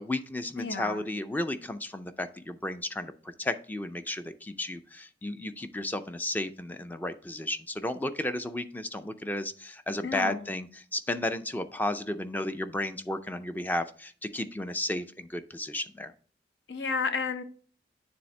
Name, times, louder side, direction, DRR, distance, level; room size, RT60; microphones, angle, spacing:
voice 1, 0.0-3.1 3.4-16.1, left 1 dB, 10° left, 0.3 m, -33 dB
voice 2, 0.6-1.0 10.0-10.5 16.7-17.4, left 4 dB, 80° left, 0.7 m, -31 dB
9.6 x 3.5 x 3.2 m
head